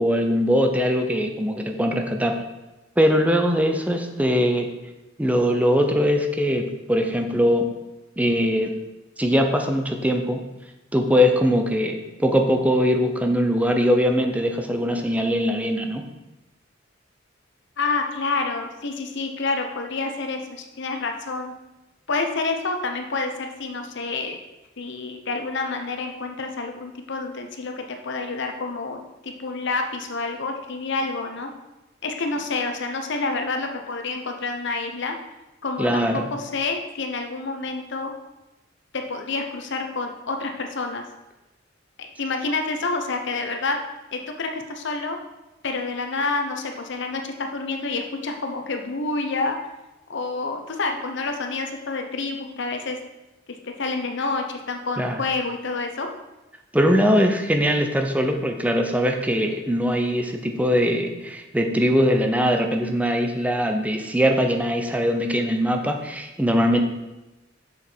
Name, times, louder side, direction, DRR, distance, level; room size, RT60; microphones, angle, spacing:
voice 1, 0.0-2.4 3.0-4.7 5.2-7.7 8.2-8.7 9.2-10.4 10.9-16.0 35.8-36.3 55.0-55.2 56.7-66.8, equal, 10° right, 4 dB, 0.7 m, -21 dB
voice 2, 17.8-21.5 22.1-24.4 24.8-31.5 32.0-35.2 35.6-38.1 38.9-41.0 42.0-43.8 44.1-45.2 45.6-49.6 50.1-53.0 53.6-56.1, left 3 dB, 65° left, 4 dB, 0.9 m, -28 dB
7.4 x 6.3 x 4.5 m, 1.0 s
head